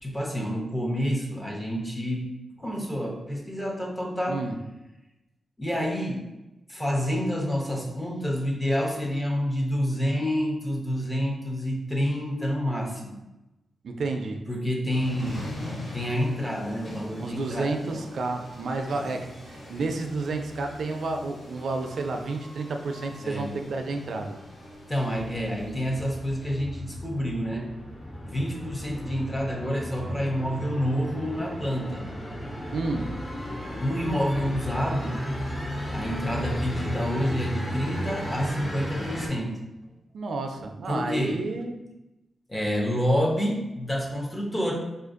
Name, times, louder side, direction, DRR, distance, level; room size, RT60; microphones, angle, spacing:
voice 1, 0.0-4.4 5.6-6.3 6.7-13.2 14.5-15.5 15.9-18.1 18.9-19.1 23.2-23.6 24.9-27.7 28.2-32.0 33.8-35.2 35.9-39.6 40.9-41.4 42.5-44.7, equal, 15° left, -1 dB, 0.5 m, -28 dB
voice 2, 13.8-14.4 17.2-24.4 32.7-33.1 40.1-41.8, right 3 dB, 65° right, 5 dB, 0.4 m, -30 dB
sound 1, 14.9-26.6, left 1 dB, 85° left, 1.0 m, -42 dB
sound 2, 25.1-39.3, equal, 40° left, 0.9 m, -35 dB
4.4 x 2.5 x 2.4 m, 0.98 s
wide cardioid pair, 120°, 0 cm